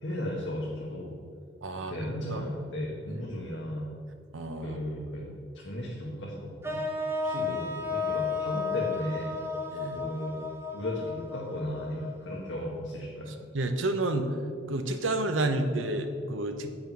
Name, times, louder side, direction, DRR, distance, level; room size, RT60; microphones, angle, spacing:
voice 1, 0.0-1.2 1.9-3.9 4.6-6.8 7.2-9.4 9.9-10.4 10.7-13.3, left 1 dB, 75° left, -3 dB, 1.4 m, -35 dB
voice 2, 1.6-2.4 3.1-3.2 4.3-4.8 7.7-7.8 9.7-10.0 13.3-14.4 14.7-16.7, right 2 dB, 90° right, 7 dB, 0.9 m, -31 dB
sound 1, 6.6-12.7, left 4 dB, 15° right, 1.0 m, -33 dB
8.8 x 6.7 x 5.9 m, 2.3 s
head